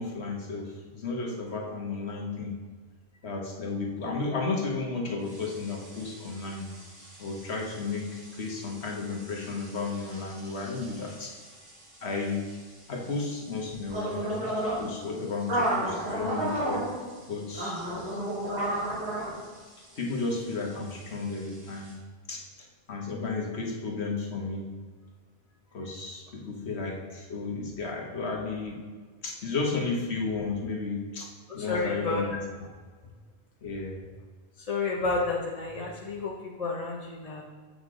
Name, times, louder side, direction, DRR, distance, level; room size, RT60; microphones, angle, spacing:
voice 1, 0.0-2.5 3.2-6.7 7.2-11.3 12.0-12.5 12.9-14.5 14.8-16.8 17.3-17.8 20.0-22.0 22.3-22.4 22.9-24.6 25.7-28.8 29.2-31.3 31.5-32.4 33.6-34.0, left 3 dB, 85° left, -1 dB, 1.6 m, -33 dB
sound 1, 5.3-21.9, right 1 dB, 85° right, 3.2 m, -35 dB
voice 2, 31.6-32.2 34.6-37.5, left 3 dB, 40° left, -2 dB, 0.8 m, -31 dB
8.1 x 6.6 x 3.9 m, 1.5 s
omnidirectional pair, 1.1 m